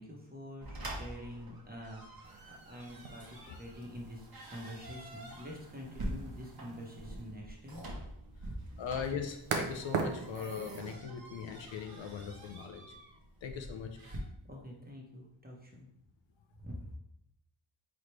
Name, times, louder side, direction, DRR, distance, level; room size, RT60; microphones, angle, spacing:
voice 1, 0.0-7.8 14.5-15.9 16.6-16.8, equal, 20° right, -1 dB, 1.0 m, -47 dB
sound 1, 0.6-14.2, right 1 dB, 50° right, 1.0 m, -46 dB
sound 2, 2.2-10.9, right 5 dB, 90° right, 0.7 m, -42 dB
voice 2, 8.8-13.0 13.4-14.0, left 6 dB, 70° left, 4 dB, 0.6 m, -40 dB
4.0 x 3.2 x 3.1 m, 0.77 s
cardioid pair, 55°, 48 cm